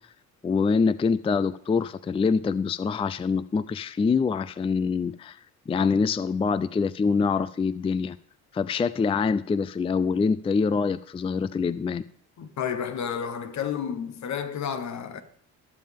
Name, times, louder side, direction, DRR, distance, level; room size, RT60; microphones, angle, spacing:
voice 1, 0.4-5.4 5.7-8.2 8.5-12.0, left 5 dB, 20° left, 0.4 m, -25 dB
voice 2, 12.4-15.2, left 7 dB, 65° left, 1.3 m, -31 dB
19.5 x 7.4 x 3.6 m
cardioid pair, 90°, 30 cm